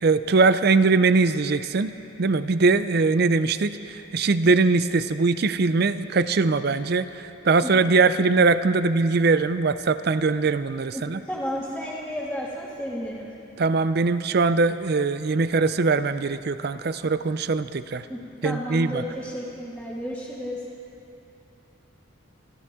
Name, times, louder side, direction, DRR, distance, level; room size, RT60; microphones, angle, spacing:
voice 1, 0.0-1.9 2.2-11.2 13.6-18.1 18.4-19.0, right 4 dB, 50° right, 13 dB, 0.5 m, -21 dB
voice 2, 10.9-13.3 18.1-20.6, equal, ahead, -10 dB, 2.0 m, -32 dB
27.0 x 14.5 x 3.7 m, 2.8 s
head